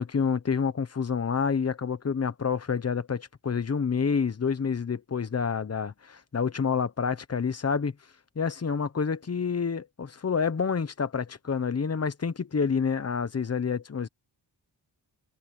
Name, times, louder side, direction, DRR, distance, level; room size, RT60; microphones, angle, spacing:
voice 1, 0.0-7.9 8.3-14.1, left 6 dB, 35° left, 1.2 m, -28 dB
wide cardioid pair, 120°, 43 cm